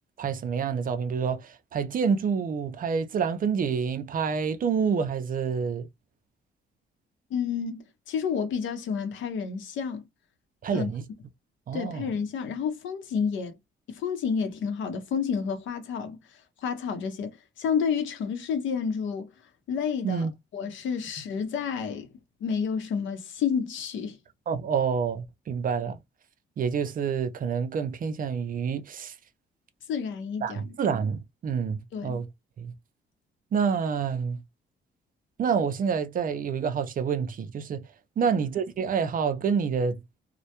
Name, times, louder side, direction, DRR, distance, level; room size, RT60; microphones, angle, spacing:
voice 1, 0.2-5.9 10.6-11.0 11.7-12.1 20.0-20.3 24.5-26.0 26.6-29.1 30.4-32.3 32.6-32.7 33.5-34.4 35.4-37.9 38.2-40.0, right 6 dB, 45° right, 0.4 m, -28 dB
voice 2, 7.3-10.0 10.7-10.9 11.7-13.6 13.9-16.2 16.6-17.3 17.6-19.3 19.7-22.1 22.4-24.2 29.9-30.7 31.9-32.2 38.2-38.4, left 6 dB, 75° left, 0.7 m, -30 dB
2.2 x 2.1 x 2.8 m
cardioid pair, 90°, 20 cm